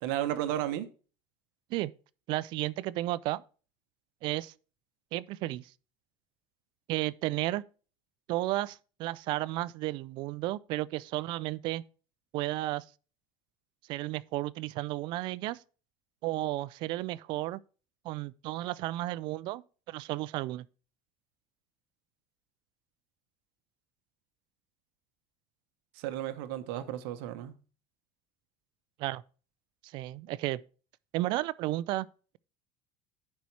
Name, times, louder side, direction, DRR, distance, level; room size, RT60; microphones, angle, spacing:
voice 1, 0.0-0.9 26.0-27.5, right 12 dB, 70° right, 1.0 m, -33 dB
voice 2, 2.3-3.4 4.2-4.5 5.1-5.7 6.9-7.6 8.3-11.8 12.3-12.8 13.9-15.6 16.2-17.6 18.0-20.7 29.0-29.2 29.8-30.6 31.1-32.1, right 17 dB, 40° right, 0.3 m, -33 dB
10.5 x 4.2 x 4.6 m
cardioid pair, 175°, 12 cm